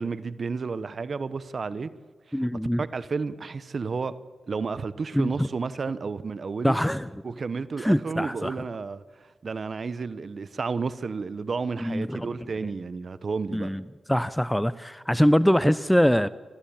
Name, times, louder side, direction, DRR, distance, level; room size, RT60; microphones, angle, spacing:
voice 1, 0.0-1.9 2.3-2.5 2.8-4.2 4.5-6.8 7.2-13.7, right 4 dB, 60° right, 1.0 m, -32 dB
voice 2, 2.3-2.8 5.1-5.5 6.6-7.1 7.8-8.5 11.8-12.3 13.5-13.8 14.1-16.3, equal, 5° left, 0.7 m, -23 dB
28.5 x 14.5 x 8.8 m
cardioid pair, 55°, 0 cm